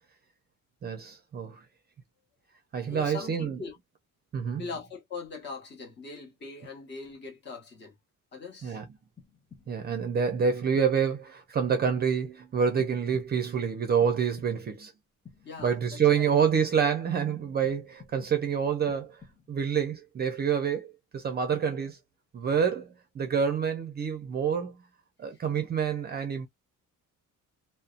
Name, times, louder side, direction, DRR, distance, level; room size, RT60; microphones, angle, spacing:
voice 1, 0.8-1.6 2.7-3.6 4.3-4.7 8.6-8.9 9.7-14.9 15.6-19.2 19.5-22.0 22.3-24.8 25.2-26.5, right 7 dB, 30° right, 0.5 m, -27 dB
voice 2, 2.9-3.8 4.6-7.9 8.3-8.8 15.4-16.3 25.3-25.4, left 4 dB, 35° left, 1.0 m, -41 dB
sound 1, 9.2-10.0 10.4-11.1 11.6-12.4 12.8-13.6 14.0-14.8 15.2-16.0 16.4-17.2 17.6-18.5 18.9-19.7, left 6 dB, 10° left, 0.7 m, -54 dB
2.6 x 2.1 x 2.4 m
cardioid pair, 165°, 32 cm